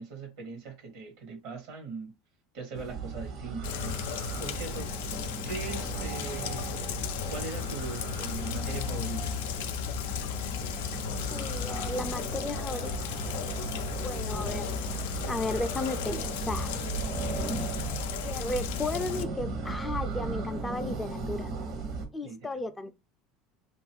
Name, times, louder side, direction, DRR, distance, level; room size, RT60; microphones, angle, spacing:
voice 1, 0.0-2.1 2.5-4.9 5.4-6.9 7.3-9.4 22.2-22.5, right 4 dB, 75° right, 1.1 m, -40 dB
sound 1, 2.7-22.1, right 4 dB, 60° right, 0.8 m, -37 dB
Rain, 3.6-19.2, left 9 dB, 85° left, 0.3 m, -35 dB
voice 2, 11.3-12.9 14.0-14.9 15.3-16.7 18.2-21.5 22.1-22.9, left 2 dB, 15° left, 0.4 m, -34 dB
2.6 x 2.4 x 3.3 m
supercardioid pair, 105°, 0 cm